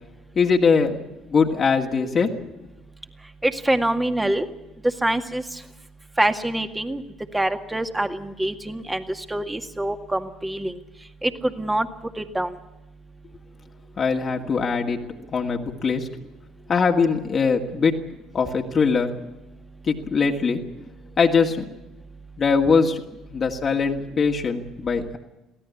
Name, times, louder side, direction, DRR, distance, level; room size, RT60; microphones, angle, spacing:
voice 1, 0.4-1.0 1.3-2.3 14.0-15.0 15.3-16.1 16.7-17.9 18.3-19.1 19.9-20.6 21.2-21.6 22.4-23.0 23.3-25.2, left 5 dB, 40° left, 1 dB, 2.1 m, -21 dB
voice 2, 3.4-4.5 5.0-5.4 6.2-7.0 7.3-9.0 9.3-10.7 11.2-11.9 12.2-12.5, right 1 dB, 10° right, 7 dB, 2.0 m, -25 dB
23.5 x 16.5 x 8.5 m, 0.99 s
figure-of-eight pair, 55°, 0 cm